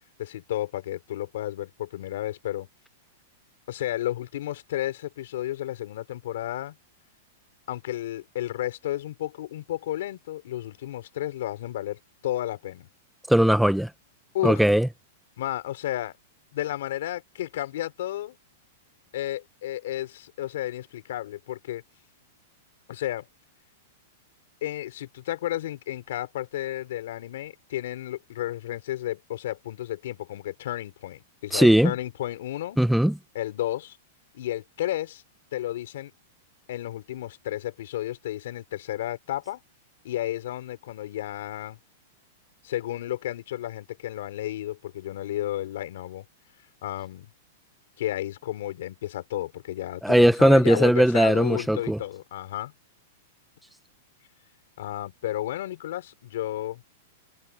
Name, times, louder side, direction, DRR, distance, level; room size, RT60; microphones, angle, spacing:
voice 1, 0.2-2.7 3.7-6.8 7.7-12.9 14.3-14.6 15.4-16.2 16.5-18.4 19.1-21.8 22.9-23.3 24.6-32.8 33.3-34.0 34.3-35.2 35.5-36.1 36.7-39.6 40.0-41.8 42.6-46.2 46.8-47.3 48.0-52.7 54.8-56.8, left 13 dB, 65° left, 4.2 m, -32 dB
voice 2, 13.3-13.9 14.4-14.9 31.5-31.9 32.8-33.2 50.0-52.0, right 1 dB, ahead, 0.5 m, -19 dB
supercardioid pair, 160°, 0 cm